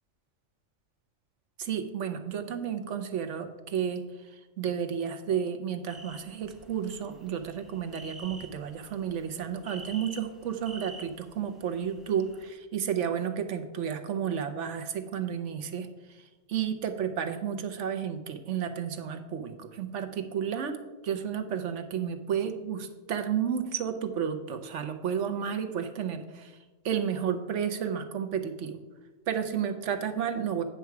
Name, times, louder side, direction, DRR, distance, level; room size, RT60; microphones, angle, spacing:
voice 1, 1.6-4.1 4.6-15.9 16.5-20.8 21.0-26.5 26.8-28.8 29.3-30.6, right 8 dB, 65° right, 8 dB, 1.0 m, -32 dB
sound 1, 5.9-12.5, right 2 dB, ahead, 0.6 m, -49 dB
9.4 x 6.0 x 4.6 m, 1.2 s
omnidirectional pair, 1.4 m